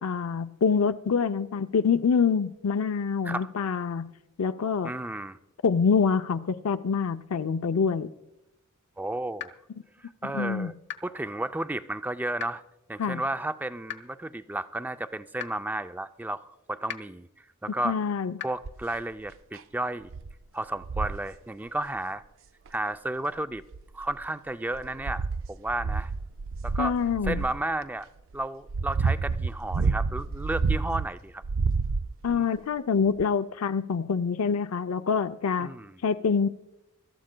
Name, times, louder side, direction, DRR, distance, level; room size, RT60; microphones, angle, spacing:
voice 1, 0.0-4.1 4.4-4.9 5.6-8.1 10.3-10.7 13.0-13.2 17.8-18.4 26.8-27.4 32.2-35.7 36.0-36.5, left 6 dB, 75° left, 0.5 m, -26 dB
voice 2, 4.8-5.4 9.0-9.5 10.0-10.7 11.0-12.6 12.9-17.3 17.6-18.0 18.4-20.1 20.5-22.2 22.7-23.6 23.9-26.1 26.6-27.0 27.2-28.1 28.3-31.4 32.3-32.5 35.6-36.0, right 1 dB, 10° right, 0.3 m, -33 dB
sound 1, 9.4-9.5 10.9-11.0 12.4-12.5 13.9-14.0 15.4-15.5 16.9-17.0 18.4-18.5, left 9 dB, 55° left, 0.9 m, -35 dB
sound 2, 18.6-19.0 19.5-19.6 20.1-20.3 20.8-21.3 22.7-22.8 23.6-24.2 24.7-27.6 28.3-31.1 31.4-32.4 33.2-33.3, right 4 dB, 65° right, 0.5 m, -29 dB
24.5 x 13.0 x 2.2 m
head